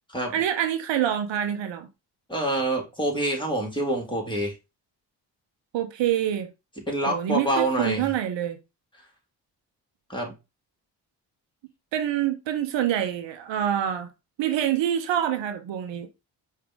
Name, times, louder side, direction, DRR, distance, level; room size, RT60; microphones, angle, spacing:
voice 1, 0.3-1.9 5.7-6.5 7.1-8.6 11.9-14.1 14.4-16.1, right 10 dB, 75° right, 0.8 m, -26 dB
voice 2, 2.3-4.5 6.9-8.1 10.1-10.3, right 1 dB, 10° left, 2.4 m, -26 dB
4.9 x 2.8 x 3.5 m
supercardioid pair, 60°, 44 cm